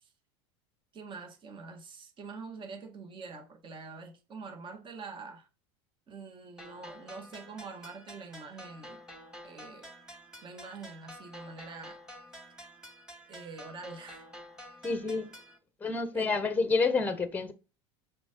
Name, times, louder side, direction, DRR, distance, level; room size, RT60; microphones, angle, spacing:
voice 1, 0.9-5.5 6.1-9.0 9.4-9.9 10.4-12.0 13.3-14.3 16.1-16.3, right 4 dB, 35° right, 1.9 m, -45 dB
sound 1, 6.6-15.6, equal, 5° right, 1.8 m, -49 dB
voice 2, 14.8-15.3 15.8-17.5, left 4 dB, 10° left, 1.0 m, -28 dB
5.9 x 5.0 x 3.7 m
supercardioid pair, 100°, 15 cm